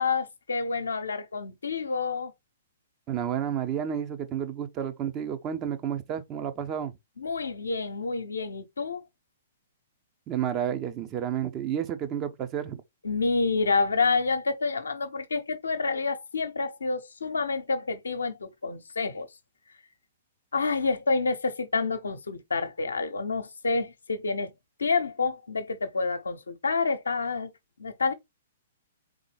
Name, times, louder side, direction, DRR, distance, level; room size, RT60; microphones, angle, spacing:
voice 1, 0.0-2.3 7.2-9.0 13.0-19.3 20.5-24.5 24.8-27.5 27.8-28.1, left 4 dB, 80° left, 0.8 m, -28 dB
voice 2, 3.1-6.9 10.3-12.8, right 9 dB, 30° right, 0.9 m, -31 dB
4.0 x 3.7 x 3.3 m
figure-of-eight pair, 115°, 0 cm